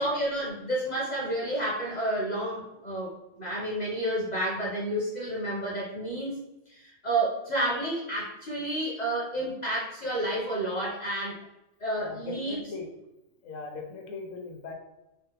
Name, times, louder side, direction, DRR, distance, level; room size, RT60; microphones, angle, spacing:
voice 1, 0.0-3.1 3.4-6.4 6.7-11.4 11.8-12.6, right 1 dB, 45° left, -5 dB, 0.6 m, -30 dB
voice 2, 12.0-12.9 13.4-14.7, left 4 dB, 70° left, 2 dB, 1.0 m, -39 dB
3.8 x 2.1 x 2.8 m, 0.94 s
omnidirectional pair, 1.5 m